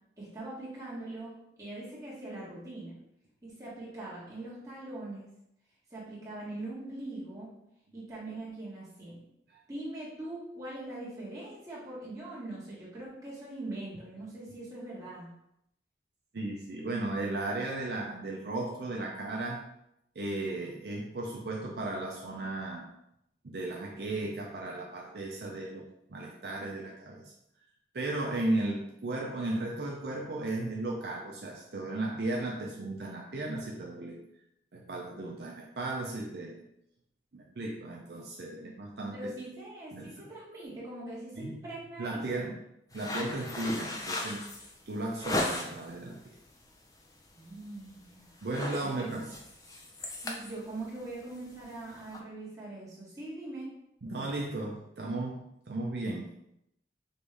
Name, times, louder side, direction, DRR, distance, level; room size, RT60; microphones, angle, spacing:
voice 1, 0.2-3.0 3.4-5.3 5.9-7.5 7.9-9.2 9.7-15.3 39.1-42.5 47.3-48.3 48.8-49.1 50.2-53.7, right 2 dB, 20° right, -8 dB, 1.6 m, -42 dB
voice 2, 16.3-19.6 20.2-22.9 23.4-27.3 27.9-34.2 34.7-36.6 37.3-39.2 39.9-40.3 41.4-41.6 42.0-42.6 42.9-44.4 44.9-46.2 48.4-49.3 54.0-56.3, right 2 dB, 60° right, -2 dB, 0.6 m, -35 dB
sound 1, 42.9-45.9 46.4-46.7 47.1-47.3 47.6-48.0 48.3-52.2, left 2 dB, 20° left, 0.5 m, -37 dB
5.2 x 2.6 x 3.3 m, 0.80 s
head